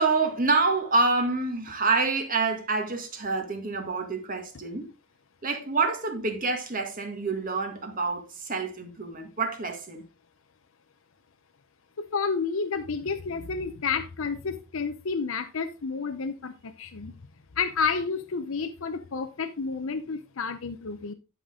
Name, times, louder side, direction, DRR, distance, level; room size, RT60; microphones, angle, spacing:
voice 1, 0.0-4.9 5.4-10.0, right 3 dB, 40° right, 1.9 m, -27 dB
voice 2, 12.0-17.1 17.6-21.1, left 5 dB, 70° left, 0.7 m, -30 dB
11.0 x 5.9 x 3.7 m
head